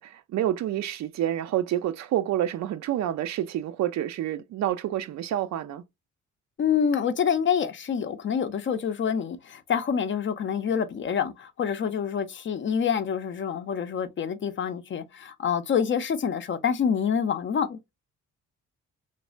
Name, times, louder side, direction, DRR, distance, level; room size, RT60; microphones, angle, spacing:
voice 1, 0.0-5.8, right 12 dB, 65° right, 0.5 m, -28 dB
voice 2, 6.6-17.9, left 7 dB, 40° left, 0.5 m, -27 dB
3.2 x 2.1 x 2.4 m
cardioid pair, 90°, 30 cm